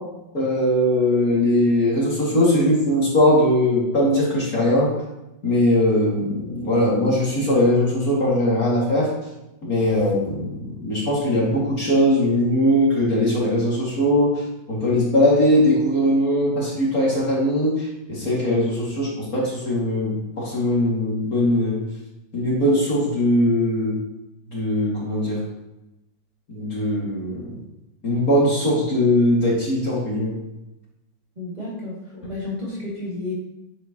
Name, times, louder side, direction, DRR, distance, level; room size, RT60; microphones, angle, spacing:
voice 1, 0.3-4.9 5.4-9.1 9.7-14.4 14.7-21.8 22.3-24.0 24.5-25.4 26.5-27.6 28.0-30.3, left 1 dB, 45° left, -5 dB, 2.8 m, -20 dB
voice 2, 31.4-33.3, left 2 dB, 20° right, -8 dB, 2.6 m, -31 dB
9.6 x 8.0 x 3.0 m, 0.95 s
omnidirectional pair, 2.2 m